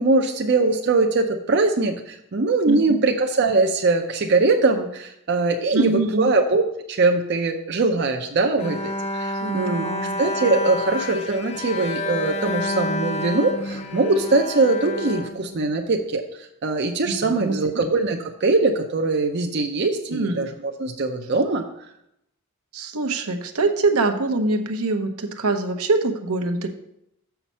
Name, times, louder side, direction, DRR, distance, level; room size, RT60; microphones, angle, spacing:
voice 1, 0.0-9.8 10.2-21.6, right 3 dB, 50° right, 3 dB, 0.6 m, -22 dB
voice 2, 2.7-3.0 5.7-6.3 9.4-10.2 17.1-17.5 20.1-20.4 22.7-26.7, right 3 dB, 80° right, 5 dB, 0.9 m, -24 dB
Bowed string instrument, 8.6-16.0, left 2 dB, 30° left, 0.5 m, -29 dB
7.2 x 5.8 x 5.4 m, 0.80 s
head